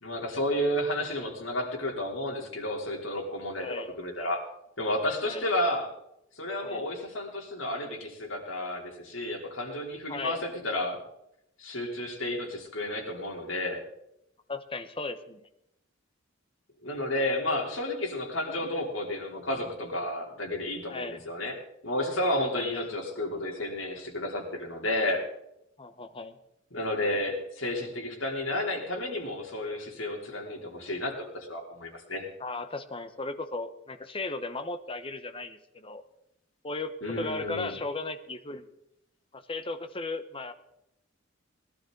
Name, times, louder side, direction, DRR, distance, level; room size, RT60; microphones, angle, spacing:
voice 1, 0.0-4.4 4.8-5.9 6.4-11.0 11.6-13.8 16.8-21.5 21.8-25.2 26.7-32.3 37.0-37.8, left 1 dB, 75° left, 0 dB, 3.5 m, -31 dB
voice 2, 3.6-3.9 5.2-5.4 6.6-6.9 10.1-10.4 14.5-15.4 18.5-18.7 20.9-21.2 22.4-22.9 25.8-26.4 32.4-36.0 36.6-38.7 39.3-40.5, left 3 dB, 25° left, 9 dB, 1.0 m, -36 dB
20.0 x 12.0 x 3.9 m, 0.81 s
head